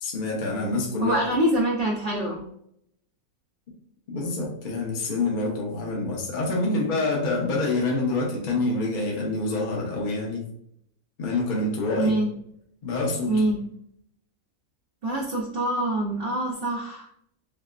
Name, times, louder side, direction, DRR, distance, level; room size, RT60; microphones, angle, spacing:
voice 1, 0.0-1.1 4.1-10.4 11.2-12.1 12.8-13.4, left 2 dB, 40° left, -2 dB, 0.8 m, -26 dB
voice 2, 1.0-2.4 12.0-12.3 13.3-13.7 15.0-17.1, right 1 dB, 50° right, -4 dB, 0.7 m, -25 dB
5.6 x 2.1 x 2.4 m, 0.71 s
omnidirectional pair, 1.7 m